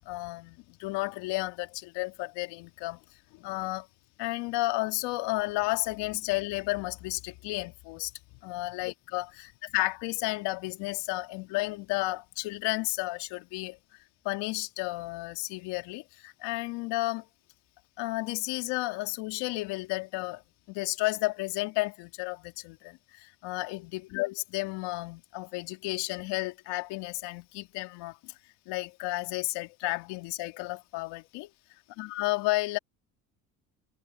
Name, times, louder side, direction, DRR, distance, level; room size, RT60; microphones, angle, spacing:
voice 1, 0.0-3.0 3.3-3.9 4.2-8.1 8.4-13.8 14.2-17.3 18.0-20.4 20.7-28.3 28.7-31.5 32.0-32.8, left 21 dB, 75° left, 2.4 m, -32 dB
hypercardioid pair, 70°, 41 cm